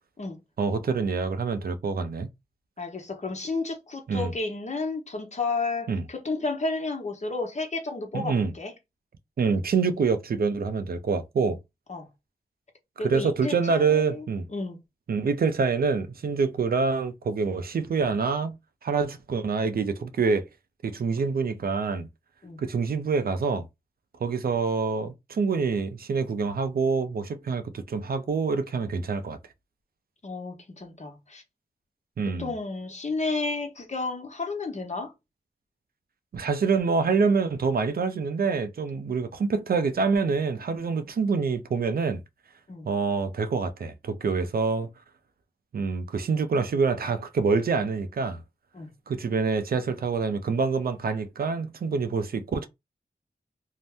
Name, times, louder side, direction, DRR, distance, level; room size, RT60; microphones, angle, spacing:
voice 1, 0.6-2.3 4.1-4.3 5.9-6.0 8.1-8.5 9.4-11.6 13.0-14.5 15.1-18.6 18.8-20.5 20.8-22.1 22.6-23.7 24.2-29.4 32.2-32.5 36.3-42.2 42.8-44.9 45.7-48.4 49.1-52.7, right 5 dB, 70° right, 0.5 m, -26 dB
voice 2, 2.8-8.7 11.9-12.1 13.0-14.3 14.5-14.8 22.4-22.6 30.2-31.4 32.4-35.1 42.7-42.9 48.7-48.9, left 3 dB, 45° left, 1.0 m, -32 dB
2.7 x 2.1 x 3.4 m
cardioid pair, 50°, 16 cm